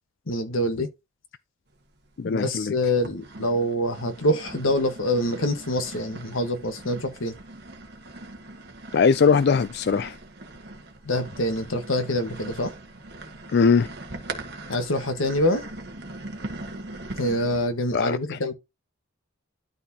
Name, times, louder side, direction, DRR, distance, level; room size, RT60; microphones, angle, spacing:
voice 1, 0.3-0.9 2.2-7.3 11.0-12.7 14.7-15.6 17.2-18.5, left 1 dB, 90° left, 1.6 m, -25 dB
sound 1, 1.8-2.5 3.0-17.6, right 2 dB, 55° right, 1.4 m, -41 dB
voice 2, 2.2-2.7 8.9-10.1 13.5-13.9 17.9-18.4, left 5 dB, 55° left, 0.4 m, -20 dB
12.0 x 4.2 x 2.9 m
head